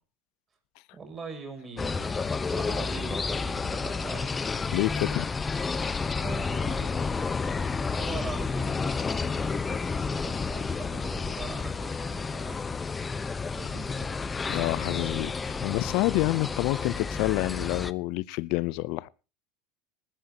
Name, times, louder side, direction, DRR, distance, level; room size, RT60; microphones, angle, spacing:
voice 1, 0.9-4.4 6.1-12.7 13.4-14.3, right 4 dB, 25° right, 7.0 m, -42 dB
sound 1, 1.8-17.9, left 4 dB, 20° left, 0.9 m, -31 dB
voice 2, 4.7-5.3 14.5-19.1, left 20 dB, 65° left, 0.6 m, -28 dB
19.5 x 14.5 x 2.9 m
supercardioid pair, 105°, 0 cm